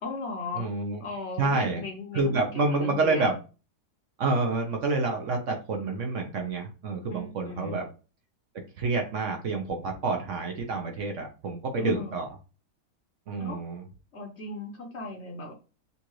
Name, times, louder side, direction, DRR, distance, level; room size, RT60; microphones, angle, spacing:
voice 1, 0.0-0.7 1.0-3.4 7.1-7.8 11.8-12.2 13.4-13.6 14.1-15.5, left 3 dB, 50° left, 3 dB, 1.0 m, -37 dB
voice 2, 0.6-1.0 1.4-1.8 2.1-3.3 4.2-7.9 8.8-12.2 13.3-13.8, right 3 dB, 60° right, 3 dB, 1.0 m, -28 dB
6.6 x 2.5 x 3.0 m, 0.33 s
omnidirectional pair, 1.7 m